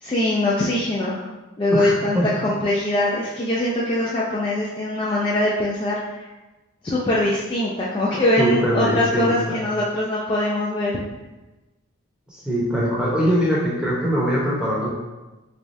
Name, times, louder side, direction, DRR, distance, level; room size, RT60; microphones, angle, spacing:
voice 1, 0.0-1.3 1.6-2.2 2.4-6.3 6.8-10.9, left 1 dB, 25° left, -6 dB, 0.3 m, -22 dB
voice 2, 1.7-2.3 8.4-9.6 12.3-14.9, equal, 5° right, -6 dB, 0.8 m, -22 dB
3.5 x 3.2 x 2.6 m, 1.1 s
head